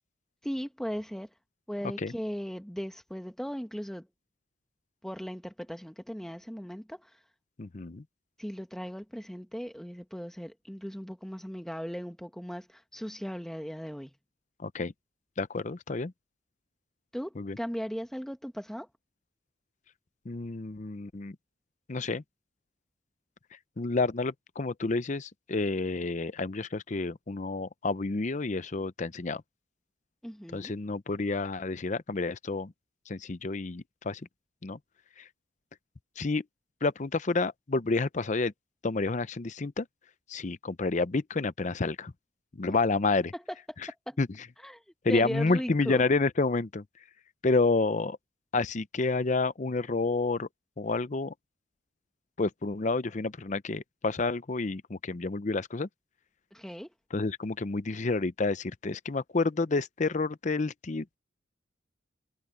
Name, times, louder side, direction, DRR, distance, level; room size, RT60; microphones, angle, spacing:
voice 1, 0.4-1.3 1.7-4.1 5.0-7.1 8.4-14.1 17.1-18.9 30.2-30.7 42.7-42.8 43.3-43.4 44.1-44.2 44.6-44.8 45.1-46.0 56.5-56.9, equal, ahead, 1.0 m, -37 dB
voice 2, 7.6-8.0 14.6-14.9 15.4-16.1 17.4-17.6 20.3-21.4 21.9-22.2 23.8-29.4 30.5-32.7 33.1-34.2 34.6-34.8 36.2-36.4 36.8-38.5 38.8-39.9 40.3-42.1 42.6-43.3 44.2-44.3 45.0-46.8 47.4-48.2 48.5-50.5 50.8-51.3 52.4-55.9 57.1-61.2, left 3 dB, 40° left, 0.6 m, -29 dB
head